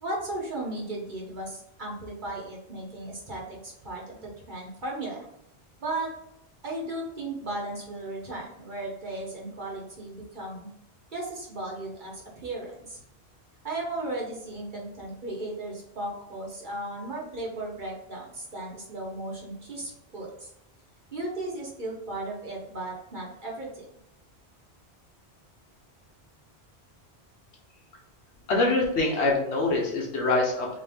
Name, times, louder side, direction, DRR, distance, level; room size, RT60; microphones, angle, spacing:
voice 1, 0.0-5.2 5.8-6.1 6.6-10.7 11.1-13.0 13.6-20.5 21.1-23.8, right 2 dB, 50° right, -3 dB, 1.3 m, -36 dB
voice 2, 28.5-30.7, left 2 dB, 90° left, 0 dB, 1.3 m, -24 dB
3.8 x 3.2 x 3.5 m, 0.80 s
omnidirectional pair, 1.1 m